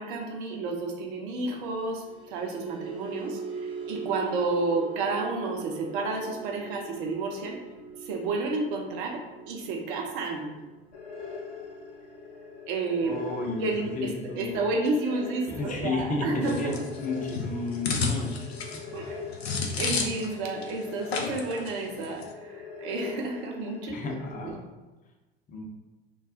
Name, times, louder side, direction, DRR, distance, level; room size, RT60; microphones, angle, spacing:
voice 1, 0.0-7.6 8.0-10.5 12.7-13.1 13.6-16.8 18.9-19.2 19.7-24.0 24.4-24.5, right 3 dB, 60° right, 1 dB, 0.6 m, -31 dB
sound 1, 1.8-18.2 18.5-18.8 19.2-19.4, right 5 dB, 15° right, 0.5 m, -43 dB
sound 2, 10.9-24.5, left 5 dB, 55° left, 0.9 m, -43 dB
voice 2, 13.0-14.6 15.5-18.3 18.7-18.8 23.9-24.6 25.5-25.6, left 2 dB, 25° left, 1 dB, 0.6 m, -32 dB
sound 3, 16.4-20.4 20.6-20.7 21.1-21.7 22.0-22.2, left 4 dB, 85° left, 0.5 m, -31 dB
2.3 x 2.3 x 3.5 m, 1.1 s
figure-of-eight pair, 75°, 31 cm